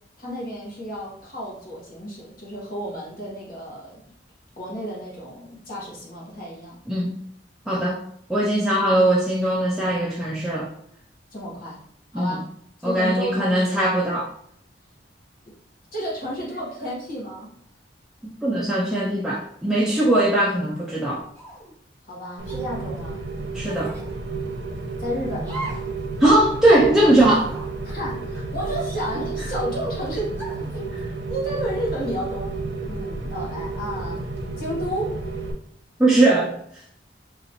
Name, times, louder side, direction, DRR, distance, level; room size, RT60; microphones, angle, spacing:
voice 1, 0.2-4.0 4.6-6.8 11.3-11.8 12.1-12.5 12.8-13.8 15.9-17.5 22.1-23.2 25.0-25.7 27.8-30.4 30.7-30.9 31.3-32.5 32.9-34.2 34.6-35.2, equal, 55° left, -5 dB, 1.1 m, -31 dB
voice 2, 6.9-7.2 7.7-8.0 8.3-10.7 12.1-12.4 12.8-14.3 18.2-21.2 23.5-23.9 26.2-27.5 36.0-36.6, right 1 dB, 5° right, -5 dB, 0.3 m, -20 dB
sound 1, 21.3-21.7 22.4-22.6 23.6-24.1 25.4-25.9 26.3-26.4 27.2-27.7 28.6-29.5 30.3-30.7, right 2 dB, 10° left, 0.8 m, -38 dB
Rain, 22.4-35.5, right 3 dB, 80° right, 0.6 m, -31 dB
3.8 x 2.4 x 2.7 m, 0.68 s
head